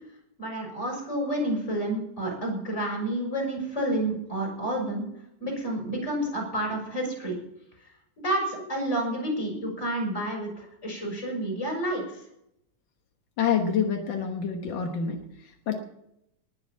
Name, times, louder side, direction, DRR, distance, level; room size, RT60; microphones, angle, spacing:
voice 1, 0.4-5.1 5.4-7.4 8.2-12.0, right 1 dB, 20° left, 0 dB, 6.4 m, -29 dB
voice 2, 13.4-15.8, left 7 dB, 65° left, 4 dB, 1.2 m, -27 dB
20.0 x 7.1 x 7.2 m, 0.77 s
omnidirectional pair, 3.8 m